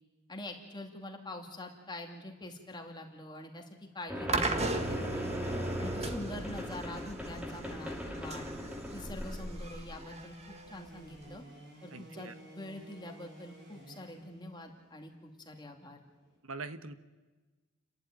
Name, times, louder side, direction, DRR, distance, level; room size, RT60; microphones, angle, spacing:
voice 1, 0.3-5.3 5.8-8.5 8.9-11.4 11.8-16.0, left 1 dB, 20° left, 2 dB, 2.5 m, -45 dB
sound 1, 4.1-10.1, equal, 5° right, 2.4 m, -39 dB
sound 2, 4.3-11.4, right 3 dB, 30° right, 1.5 m, -38 dB
sound 3, 9.3-16.4, right 1 dB, 60° right, 6.6 m, -55 dB
voice 2, 11.9-12.3 16.4-16.9, right 3 dB, 90° right, 11 dB, 1.2 m, -42 dB
30.0 x 11.5 x 9.2 m, 1.3 s
head